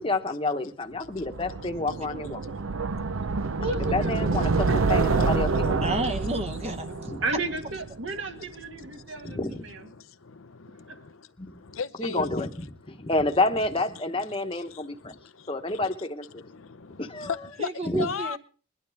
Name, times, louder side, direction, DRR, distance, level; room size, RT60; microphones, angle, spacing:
voice 1, 0.0-2.4 3.9-5.9 7.1-7.2 9.2-9.6 11.4-11.5 12.0-15.1 15.5-16.4 17.0-17.5 17.8-18.1, left 2 dB, 25° left, 1.1 m, -29 dB
sound 1, 1.2-8.3, right 4 dB, 80° right, 0.7 m, -27 dB
voice 2, 2.4-3.6 9.2-9.4 10.0-12.3 12.9-13.1 14.7-15.5 16.3-17.7 18.0-18.4, left 6 dB, 75° left, 0.7 m, -38 dB
voice 3, 3.6-5.2 7.2-9.9 10.9-11.0, right 2 dB, 60° right, 1.8 m, -34 dB
voice 4, 5.8-7.1 17.6-18.4, right 2 dB, 30° right, 0.9 m, -30 dB
21.5 x 11.5 x 3.4 m
head